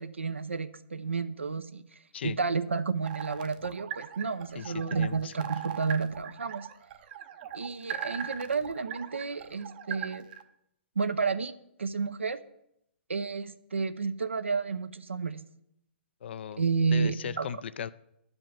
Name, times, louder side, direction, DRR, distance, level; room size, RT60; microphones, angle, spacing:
voice 1, 0.0-1.8 2.2-6.7 7.5-10.3 11.0-11.5 11.8-12.4 13.1-15.4 16.6-17.5, right 5 dB, 85° right, 11 dB, 0.7 m, -31 dB
sound 1, 3.0-10.4, right 10 dB, 45° right, 0.7 m, -40 dB
voice 2, 4.6-5.5 16.2-16.6 16.9-17.9, left 8 dB, 60° left, 16 dB, 0.4 m, -37 dB
11.0 x 5.3 x 7.2 m, 0.78 s
figure-of-eight pair, 125°, 6 cm